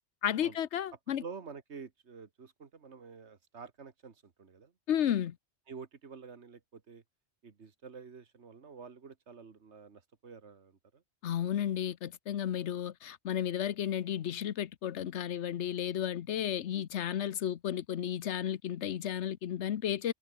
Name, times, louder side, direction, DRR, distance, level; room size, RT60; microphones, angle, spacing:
voice 1, 0.2-1.2 4.9-5.4 11.2-20.1, left 10 dB, 80° left, 1.1 m, -33 dB
voice 2, 1.1-4.7 5.7-7.0 7.4-11.0 12.6-12.7, right 5 dB, 80° right, 1.9 m, -49 dB
omnidirectional pair, 1.1 m